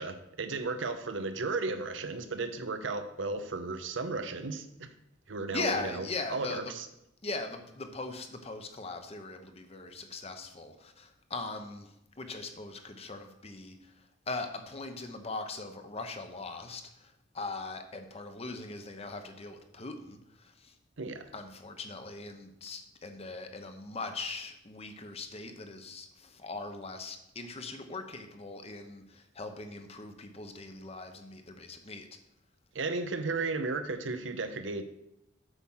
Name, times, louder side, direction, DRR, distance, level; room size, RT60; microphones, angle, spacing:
voice 1, 0.0-4.9 5.3-6.9 21.0-21.3 32.7-34.8, right 3 dB, 75° right, 9 dB, 0.8 m, -34 dB
voice 2, 5.5-6.7 7.2-11.9 12.2-13.8 14.3-20.7 21.3-32.1, left 3 dB, 30° left, 7 dB, 0.9 m, -40 dB
8.1 x 6.0 x 5.6 m, 0.84 s
head